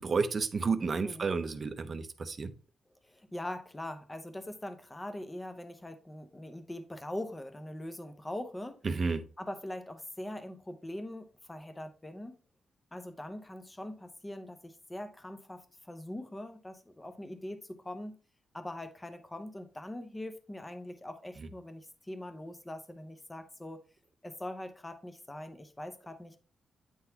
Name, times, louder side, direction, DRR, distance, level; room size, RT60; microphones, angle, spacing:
voice 1, 0.0-2.5 8.8-9.2, right 4 dB, 40° right, 0.6 m, -31 dB
voice 2, 3.1-8.8 9.4-12.4 12.9-18.2 18.5-23.8 24.2-26.4, left 1 dB, 15° left, 0.7 m, -42 dB
8.9 x 3.9 x 2.8 m
cardioid pair, 105°, 0 cm